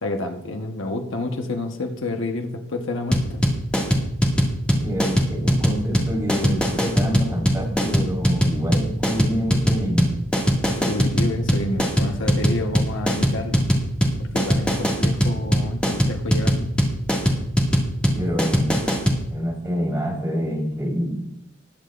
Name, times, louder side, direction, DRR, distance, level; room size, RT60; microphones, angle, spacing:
voice 1, 0.0-3.4 10.7-13.7 14.2-16.7, left 2 dB, 70° left, 4 dB, 1.2 m, -29 dB
sound 1, 3.1-19.2, equal, 5° left, 2.0 m, -20 dB
voice 2, 4.7-10.1 18.1-18.9 19.3-21.2, equal, 10° right, -4 dB, 4.4 m, -26 dB
21.0 x 8.9 x 2.5 m, 0.80 s
head